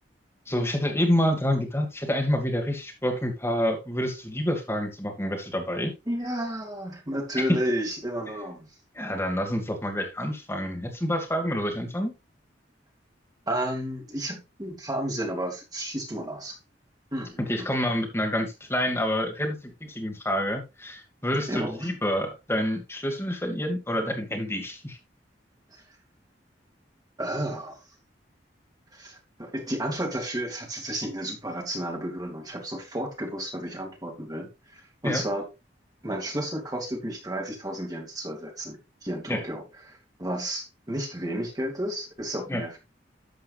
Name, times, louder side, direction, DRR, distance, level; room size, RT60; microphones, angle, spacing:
voice 1, 0.5-5.9 7.4-7.5 8.9-12.1 17.5-25.0 35.0-35.2 39.3-39.4 42.5-42.6, equal, 15° left, 2.1 m, -28 dB
voice 2, 6.1-8.7 13.5-16.6 17.1-17.7 21.5-21.9 25.7-25.8 27.2-27.8 28.9-35.5 36.0-42.8, right 1 dB, 20° right, 2.5 m, -32 dB
12.0 x 7.6 x 2.5 m
head